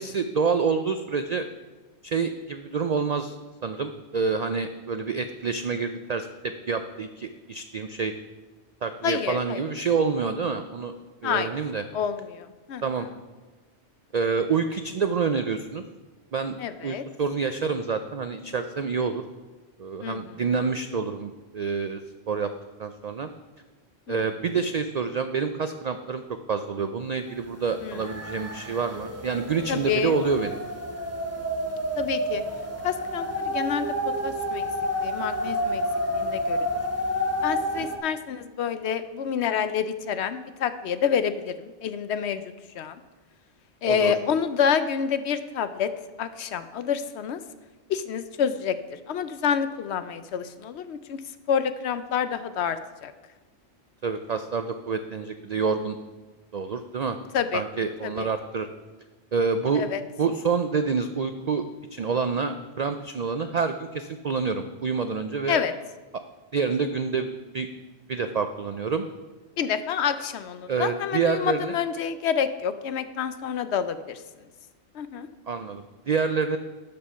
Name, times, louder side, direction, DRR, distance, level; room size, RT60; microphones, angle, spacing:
voice 1, 0.0-1.5 2.0-3.4 3.6-8.1 8.8-10.9 11.2-11.8 12.8-13.1 14.1-15.8 16.3-19.2 19.8-22.0 22.3-22.5 22.8-23.3 24.1-26.2 26.5-30.6 43.9-44.1 54.0-56.0 56.5-57.2 57.5-58.7 59.3-59.8 60.2-61.6 61.9-65.6 66.5-67.3 67.5-67.7 68.1-69.1 70.7-71.7 75.5-76.6, right 5 dB, 70° right, 8 dB, 0.4 m, -27 dB
voice 2, 9.0-9.6 11.2-11.6 11.9-12.8 16.6-17.0 20.0-20.4 24.1-24.2 27.8-28.0 29.7-30.2 32.0-32.4 32.8-33.9 34.2-34.6 35.0-35.8 36.1-36.6 37.4-42.4 42.7-43.0 43.8-45.9 46.2-47.4 47.9-51.2 51.5-53.1 57.3-57.6 58.0-58.3 59.7-60.0 65.5-65.7 69.6-74.2 74.9-75.3, left 7 dB, 70° left, 12 dB, 0.8 m, -28 dB
sound 1, 27.4-27.5 27.7-38.0, equal, 15° right, 1.1 m, -29 dB
12.5 x 5.3 x 5.6 m, 1.3 s
omnidirectional pair, 1.3 m